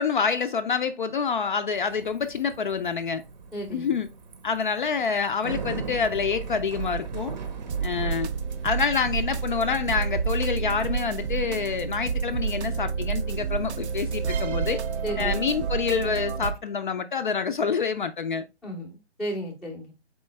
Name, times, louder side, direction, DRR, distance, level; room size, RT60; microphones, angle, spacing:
voice 1, 0.0-3.2 3.7-4.1 4.4-7.3 7.8-8.3 8.6-14.8 15.2-18.4, left 6 dB, 50° left, 0.4 m, -27 dB
Bicycle, 1.7-16.6, right 6 dB, 45° right, 0.7 m, -40 dB
voice 2, 3.5-3.9 15.0-15.4 18.6-19.9, right 1 dB, ahead, 0.5 m, -34 dB
sound 1, 7.7-16.5, right 6 dB, 80° right, 0.5 m, -29 dB
4.2 x 3.3 x 3.1 m
figure-of-eight pair, 145°, 33 cm